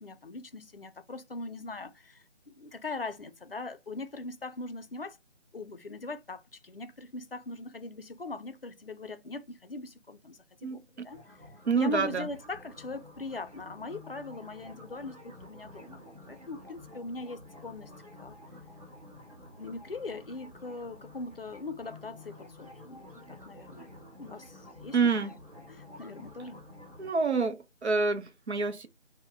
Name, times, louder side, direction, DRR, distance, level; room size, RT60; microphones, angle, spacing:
voice 1, 0.0-5.2 5.5-11.2 11.7-17.9 18.2-18.4 19.6-25.4 25.7-26.6, left 3 dB, 55° left, 0.4 m, -41 dB
voice 2, 10.6-11.1 11.7-12.3 24.9-25.3 27.0-28.9, right 4 dB, 65° right, 0.6 m, -28 dB
sound 1, 11.1-27.1, left 1 dB, 30° right, 1.0 m, -51 dB
2.5 x 2.1 x 3.6 m
figure-of-eight pair, 165°, 36 cm